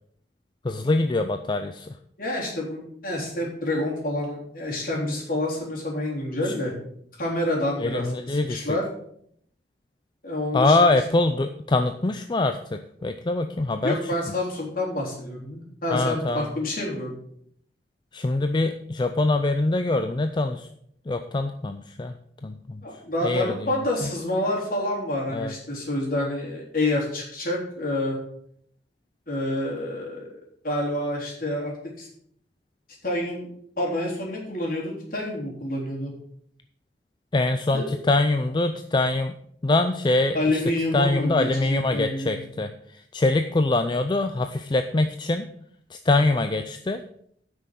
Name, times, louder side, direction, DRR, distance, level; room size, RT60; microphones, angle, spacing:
voice 1, 0.6-2.0 6.5-6.6 7.8-8.7 10.5-14.0 15.9-16.5 18.1-20.7 21.1-22.1 22.4-22.8 23.2-23.7 24.0-24.1 25.3-25.5 37.3-39.4 39.6-40.6 40.9-45.5 45.9-47.0, left 2 dB, 25° left, 8 dB, 0.4 m, -24 dB
voice 2, 2.2-6.7 7.2-8.1 8.5-8.8 10.2-11.0 13.8-17.1 22.8-28.2 29.3-30.3 30.6-32.1 33.0-33.5 33.8-36.1 37.7-37.8 40.3-42.4, left 1 dB, 55° left, -3 dB, 3.6 m, -28 dB
9.1 x 6.2 x 6.5 m, 0.68 s
head